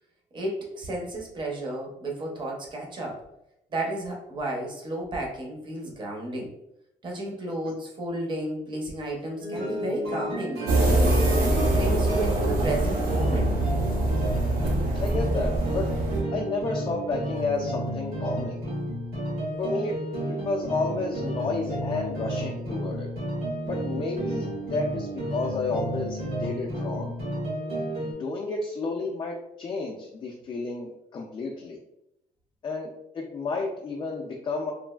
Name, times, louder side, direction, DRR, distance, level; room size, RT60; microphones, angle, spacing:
voice 1, 0.3-3.2 3.7-6.5 7.0-13.5, right 1 dB, 30° right, 0 dB, 0.6 m, -32 dB
sound 1, 9.4-28.1, right 1 dB, 85° right, 1.3 m, -32 dB
sound 2, 10.7-16.2, right 1 dB, 65° right, 0.7 m, -24 dB
voice 2, 14.6-15.8 16.3-18.6 19.6-19.9 20.3-23.1 23.7-27.1 28.0-31.8 32.6-34.7, left 3 dB, 30° left, -1 dB, 0.3 m, -31 dB
3.0 x 2.4 x 2.3 m, 0.82 s
cardioid pair, 160°, 15 cm